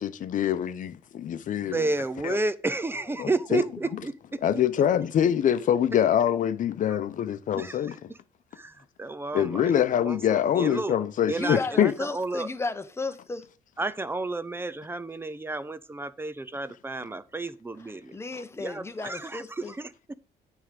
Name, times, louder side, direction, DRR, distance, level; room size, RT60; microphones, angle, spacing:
voice 1, 0.0-1.8 2.2-2.4 3.2-3.6 4.4-7.9 9.3-11.9, left 9 dB, 50° left, 0.8 m, -24 dB
voice 2, 1.6-4.4 7.6-8.0 8.6-11.0 11.3-12.5 13.8-18.1 18.6-20.2, right 2 dB, 15° right, 0.5 m, -32 dB
voice 3, 11.3-13.5 18.1-19.7, left 3 dB, 15° left, 0.8 m, -34 dB
9.3 x 3.7 x 6.6 m
cardioid pair, 110°, 17 cm